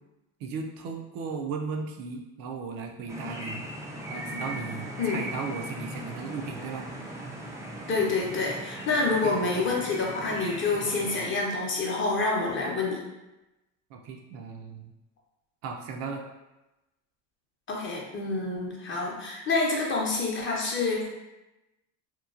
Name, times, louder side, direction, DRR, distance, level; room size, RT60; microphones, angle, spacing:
voice 1, 0.4-3.6 4.1-6.9 9.2-9.5 13.9-14.9 15.6-16.3, right 5 dB, 60° right, 2 dB, 0.5 m, -36 dB
sound 1, 3.1-11.3, equal, 10° right, 0.3 m, -38 dB
voice 2, 7.9-13.0 17.7-21.1, left 3 dB, 30° left, -2 dB, 0.7 m, -27 dB
2.9 x 2.2 x 2.4 m, 0.99 s
supercardioid pair, 95°, 38 cm